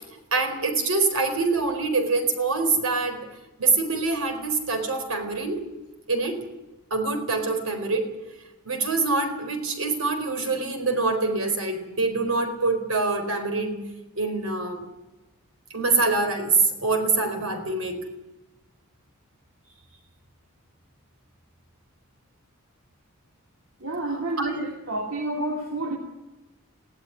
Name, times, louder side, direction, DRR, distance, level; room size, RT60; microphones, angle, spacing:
voice 1, 0.3-3.3 3.6-5.7 6.1-6.4 6.9-8.1 8.6-13.8 14.1-14.9 15.7-18.1 24.4-24.6, right 3 dB, 80° right, 6 dB, 4.5 m, -25 dB
voice 2, 23.8-26.0, right 2 dB, 65° right, 1 dB, 2.6 m, -29 dB
19.0 x 17.0 x 9.9 m, 1.0 s
head